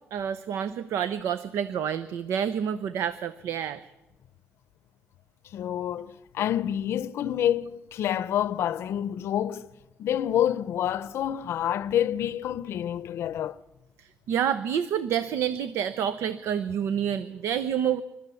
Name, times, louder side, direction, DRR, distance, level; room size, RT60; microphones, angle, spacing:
voice 1, 0.1-3.8 14.0-18.0, right 9 dB, 85° right, 0.7 m, -28 dB
voice 2, 5.5-9.7 10.0-13.6, left 10 dB, 70° left, 0.6 m, -28 dB
30.0 x 13.0 x 6.9 m
cardioid pair, 135°, 5 cm